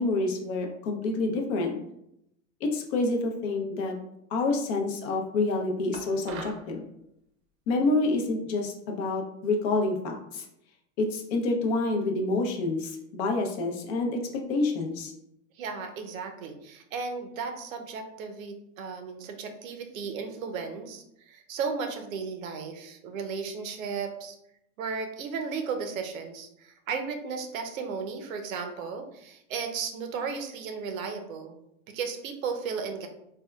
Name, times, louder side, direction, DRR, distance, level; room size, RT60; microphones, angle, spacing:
voice 1, 0.0-1.8 2.6-4.0 4.3-6.9 7.7-10.4 11.0-15.1, left 2 dB, 55° left, 2 dB, 0.7 m, -28 dB
sound 1, 5.9-6.7, right 5 dB, 45° right, 0.6 m, -41 dB
voice 2, 15.5-24.4 24.8-31.6 31.9-33.1, right 5 dB, 80° right, 5 dB, 0.6 m, -35 dB
3.5 x 2.2 x 2.2 m, 0.80 s
hypercardioid pair, 130°, 40 cm